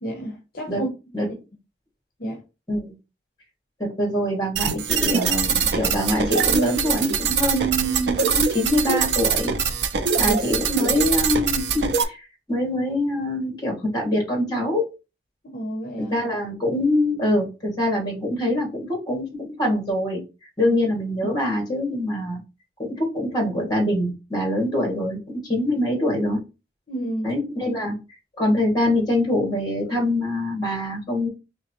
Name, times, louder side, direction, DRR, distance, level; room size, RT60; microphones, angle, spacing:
voice 1, 0.0-0.9 1.2-1.3 2.2-2.4 10.2-10.4 15.5-16.2 20.6-20.8 26.9-27.3, right 1 dB, 55° left, 0.8 m, -30 dB
voice 2, 3.8-9.6 10.2-14.9 16.0-20.2 20.6-22.4 22.8-26.4 27.2-28.0 28.4-31.3, left 1 dB, 25° left, 2.0 m, -24 dB
sound 1, 4.5-12.0, right 6 dB, 75° right, 0.5 m, -23 dB
3.8 x 3.4 x 2.9 m
head